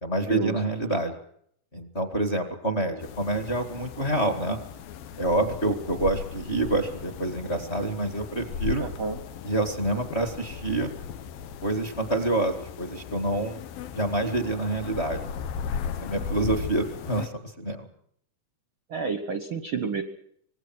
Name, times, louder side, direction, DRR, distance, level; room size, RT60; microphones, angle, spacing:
voice 1, 0.0-1.1 1.7-4.6 5.2-8.8 9.4-10.9 11.6-13.6 13.9-15.2 15.8-17.8, right 2 dB, 25° left, 5 dB, 1.8 m, -27 dB
sound 1, 3.0-17.3, left 7 dB, 90° left, 3.0 m, -37 dB
voice 2, 8.8-9.2 18.9-20.0, right 5 dB, 60° right, 9 dB, 1.3 m, -30 dB
26.0 x 20.0 x 6.1 m, 0.68 s
omnidirectional pair, 4.0 m